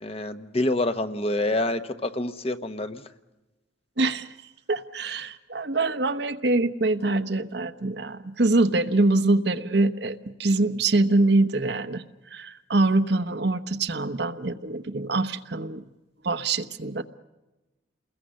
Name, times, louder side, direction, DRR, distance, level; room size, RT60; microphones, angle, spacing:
voice 1, 0.0-3.0, left 1 dB, 30° left, 9 dB, 1.0 m, -27 dB
voice 2, 4.0-4.3 4.7-12.0 12.3-15.8 16.2-17.0, right 2 dB, 60° right, 10 dB, 1.0 m, -24 dB
29.0 x 21.5 x 6.5 m, 1.1 s
head